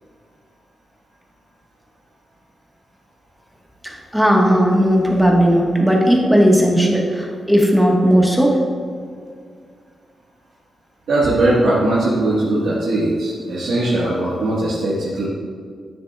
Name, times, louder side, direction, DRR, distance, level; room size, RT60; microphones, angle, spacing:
voice 1, 3.8-8.6, equal, ahead, -1 dB, 1.4 m, -15 dB
voice 2, 11.1-15.2, right 1 dB, 90° right, -8 dB, 1.4 m, -19 dB
9.5 x 7.5 x 2.3 m, 2.1 s
cardioid pair, 80°, 0 cm